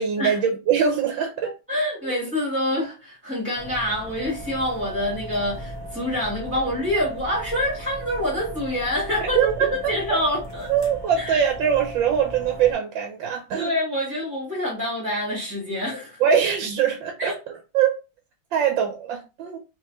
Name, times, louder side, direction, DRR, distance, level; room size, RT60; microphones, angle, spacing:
voice 1, 0.0-1.5 2.0-2.2 9.4-10.2 10.7-13.7 16.2-17.3 17.7-18.0 18.5-19.6, right 8 dB, 85° right, 1.5 m, -22 dB
voice 2, 1.4-10.7 11.2-11.4 13.5-16.2 17.2-17.3, left 1 dB, 5° right, 1.3 m, -26 dB
sound 1, 3.5-12.7, right 1 dB, 30° right, 0.4 m, -37 dB
3.5 x 2.9 x 3.0 m
omnidirectional pair, 2.1 m